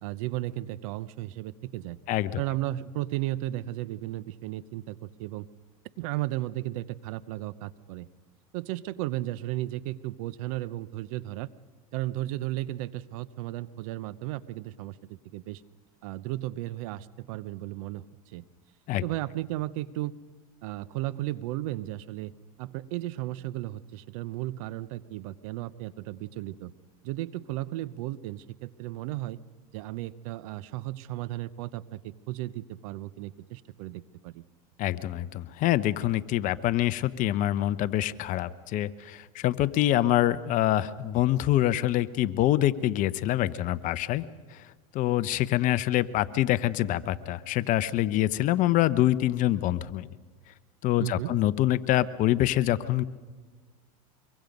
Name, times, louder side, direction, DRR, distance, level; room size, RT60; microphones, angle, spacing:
voice 1, 0.0-2.0 2.4-5.5 6.0-8.1 8.5-11.5 11.9-15.6 16.0-18.4 19.0-20.1 20.6-22.3 22.6-26.7 27.0-29.4 29.7-34.4 51.0-51.4, right 16 dB, 65° right, 17 dB, 0.8 m, -34 dB
voice 2, 2.1-2.4 18.9-19.0 34.8-44.2 44.5-44.6 44.9-50.1 50.8-53.0, left 14 dB, 45° left, 15 dB, 0.8 m, -25 dB
24.0 x 23.0 x 5.3 m, 1.5 s
supercardioid pair, 115°, 19 cm